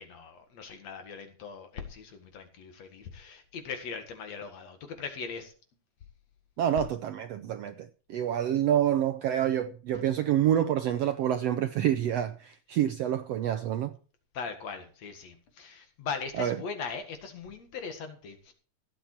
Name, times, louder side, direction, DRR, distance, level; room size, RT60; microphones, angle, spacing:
voice 1, 0.0-5.5 14.3-18.5, left 5 dB, 60° left, 2.8 m, -40 dB
voice 2, 6.6-13.9 16.4-16.6, right 10 dB, 75° right, 1.5 m, -27 dB
16.0 x 8.8 x 4.6 m
omnidirectional pair, 3.6 m